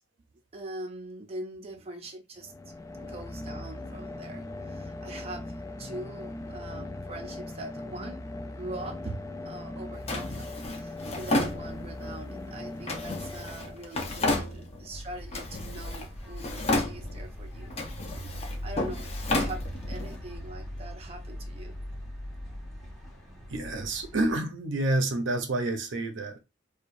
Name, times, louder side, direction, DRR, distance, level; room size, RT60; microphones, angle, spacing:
voice 1, 0.5-2.5 3.0-9.2 9.5-18.2 18.6-21.7, right 1 dB, 30° right, 0.6 m, -42 dB
sound 1, 2.4-14.3, left 2 dB, 15° left, 0.3 m, -39 dB
Drawer open or close, 10.1-12.1 12.9-15.0 15.3-16.1 16.4-17.3 17.7-20.1, left 2 dB, 30° left, 0.7 m, -32 dB
sound 2, 14.9-24.4, equal, ahead, 1.4 m, -40 dB
voice 2, 23.5-26.4, right 2 dB, 65° right, 0.7 m, -29 dB
4.7 x 2.3 x 2.6 m
head